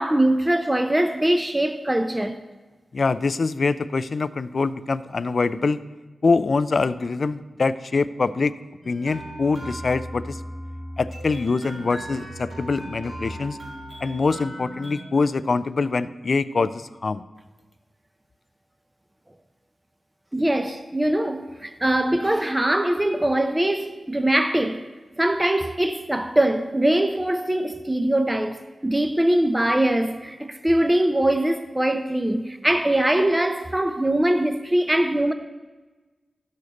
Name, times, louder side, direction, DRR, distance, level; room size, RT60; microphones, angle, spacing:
voice 1, 0.0-2.4 20.3-24.9 25.2-35.3, right 1 dB, 15° right, 0.6 m, -22 dB
voice 2, 2.9-5.8 6.2-8.5 8.9-10.4 11.0-13.6 14.0-17.2, left 4 dB, 60° left, 0.3 m, -24 dB
sound 1, 8.8-15.1, equal, 65° right, 3.3 m, -37 dB
12.0 x 6.6 x 4.1 m
cardioid pair, 55°, 0 cm